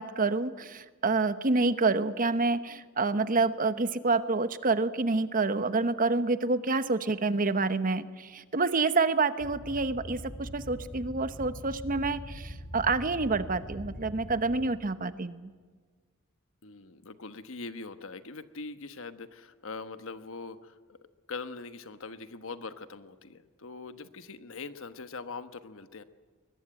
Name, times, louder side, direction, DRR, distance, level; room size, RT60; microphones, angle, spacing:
voice 1, 0.0-15.5, right 3 dB, 40° right, 12 dB, 1.0 m, -28 dB
sound 1, 9.4-14.6, equal, 45° left, 3.7 m, -42 dB
voice 2, 16.6-21.0 21.3-26.0, left 4 dB, 65° left, 10 dB, 1.2 m, -42 dB
21.5 x 21.0 x 8.9 m, 1.5 s
head